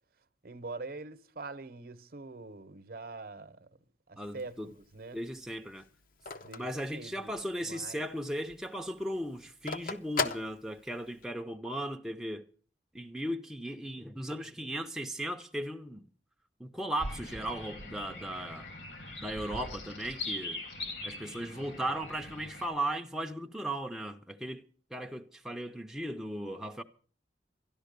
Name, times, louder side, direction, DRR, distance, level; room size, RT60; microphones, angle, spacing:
voice 1, 0.4-3.7 4.1-5.2 6.4-8.1, right 3 dB, 55° right, 0.8 m, -44 dB
Telephone, 4.2-7.6 8.0-8.1 8.4-11.3, left 4 dB, 50° left, 0.8 m, -37 dB
voice 2, 4.2-4.7 5.1-5.8 6.6-12.4 12.9-16.1 16.6-18.7 19.2-20.6 21.0-24.6 24.9-26.8, right 1 dB, ahead, 0.5 m, -37 dB
sound 1, 17.0-22.7, left 2 dB, 70° left, 2.8 m, -41 dB
12.5 x 11.0 x 6.6 m
head